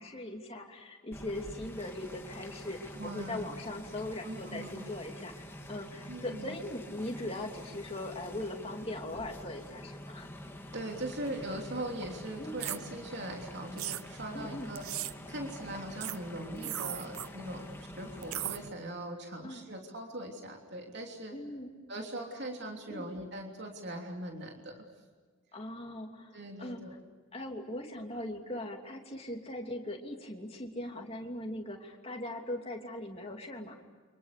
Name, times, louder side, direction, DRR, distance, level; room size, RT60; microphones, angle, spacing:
voice 1, 0.0-10.3 12.4-12.6 14.3-14.7 16.5-16.7 19.4-19.7 21.3-21.7 22.9-23.1 25.5-27.0 27.3-33.8, left 1 dB, 25° left, 1 dB, 2.9 m, -40 dB
sound 1, 1.1-18.7, equal, 10° left, 1.9 m, -46 dB
voice 2, 2.9-3.5 4.2-4.9 6.1-6.6 10.7-14.8 15.3-21.3 21.9-24.8 26.3-27.0, right 1 dB, 50° right, 1 dB, 3.2 m, -41 dB
sound 2, 12.6-12.8 13.8-14.0 14.8-15.1 16.0-16.2 16.6-17.3 18.2-18.6, right 13 dB, 75° right, 0.8 m, -36 dB
30.0 x 26.0 x 6.8 m, 1.5 s
head